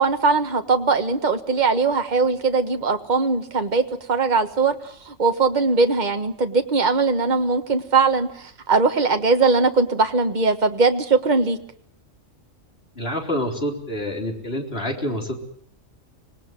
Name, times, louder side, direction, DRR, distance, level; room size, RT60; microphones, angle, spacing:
voice 1, 0.0-11.6, right 4 dB, 35° right, 7 dB, 1.6 m, -20 dB
voice 2, 13.0-15.4, left 1 dB, 50° left, 2 dB, 4.2 m, -27 dB
26.0 x 19.0 x 9.2 m, 0.63 s
omnidirectional pair, 1.4 m